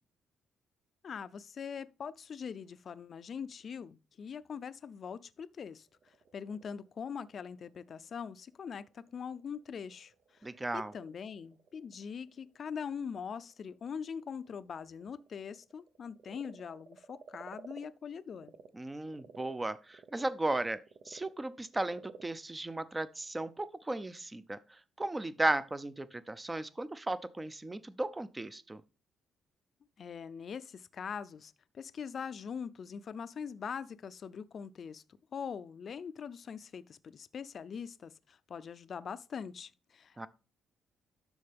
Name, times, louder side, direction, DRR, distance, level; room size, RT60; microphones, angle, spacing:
voice 1, 1.0-18.5 30.0-35.0 35.3-40.3, left 6 dB, 50° left, 0.5 m, -42 dB
Frog, 5.8-18.7 19.0-23.7, right 5 dB, 65° right, 0.9 m, -56 dB
voice 2, 10.4-10.9 18.7-20.8 21.1-24.6 25.0-28.8 40.2-40.3, right 2 dB, 15° right, 0.6 m, -35 dB
12.0 x 4.3 x 3.5 m
cardioid pair, 90°, 0 cm